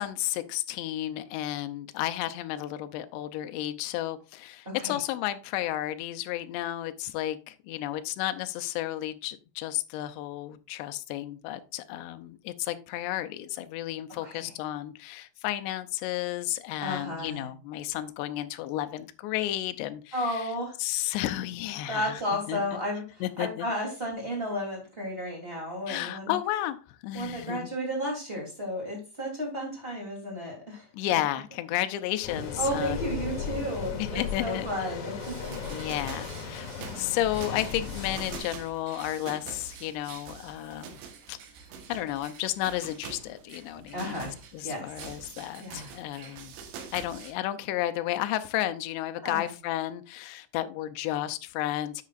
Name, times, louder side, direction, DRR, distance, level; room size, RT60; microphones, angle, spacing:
voice 1, 0.0-20.5 20.8-22.2 22.5-22.8 23.2-23.7 25.9-27.7 30.9-33.0 34.0-34.7 35.7-36.7 37.0-41.0 41.3-41.4 41.9-46.5 46.9-52.0, left 14 dB, 80° left, 10 dB, 2.5 m, -32 dB
voice 2, 4.6-5.0 14.2-14.5 16.8-17.5 20.1-20.7 21.9-26.3 27.1-30.9 32.6-35.8 36.8-37.2 43.9-44.3 44.6-44.9 45.6-45.9 49.2-49.5, equal, 15° right, -2 dB, 2.1 m, -33 dB
sound 1, 32.2-38.4, left 6 dB, 60° left, 4.4 m, -36 dB
sound 2, 35.2-47.3, right 6 dB, 75° right, 3.4 m, -45 dB
10.5 x 7.3 x 2.5 m, 0.33 s
omnidirectional pair, 5.6 m